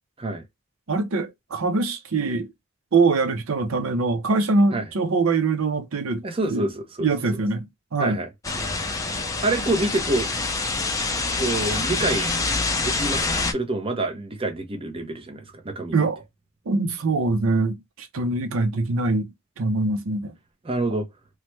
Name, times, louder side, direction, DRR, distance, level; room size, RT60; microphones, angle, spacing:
voice 1, 0.9-2.5 2.9-6.7 7.0-8.2 15.9-16.2 16.7-20.4, right 3 dB, 80° right, 0.6 m, -23 dB
voice 2, 6.2-7.1 8.0-8.3 8.8-8.9 9.4-10.3 11.4-12.3 12.8-16.0 20.7-21.1, right 2 dB, 25° right, 0.6 m, -27 dB
sound 1, 8.4-13.5, left 3 dB, 15° left, 0.5 m, -26 dB
3.1 x 2.1 x 3.0 m
head